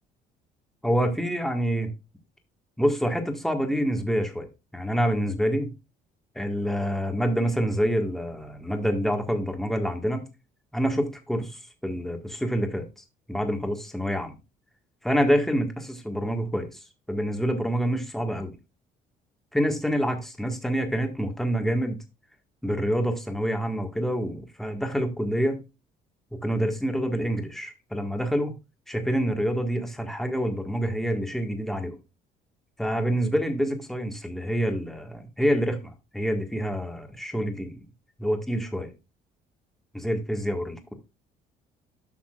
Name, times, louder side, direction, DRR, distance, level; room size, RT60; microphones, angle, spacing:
voice 1, 0.8-1.9 2.8-4.5 4.7-5.7 6.4-10.2 10.7-12.9 13.3-14.4 15.0-16.8 17.1-18.5 19.5-22.0 22.6-25.6 26.3-28.5 28.9-32.0 32.8-37.8 38.2-38.9 39.9-40.9, equal, ahead, 1.7 m, -27 dB
12.0 x 5.9 x 2.4 m
cardioid pair, 110°, 17 cm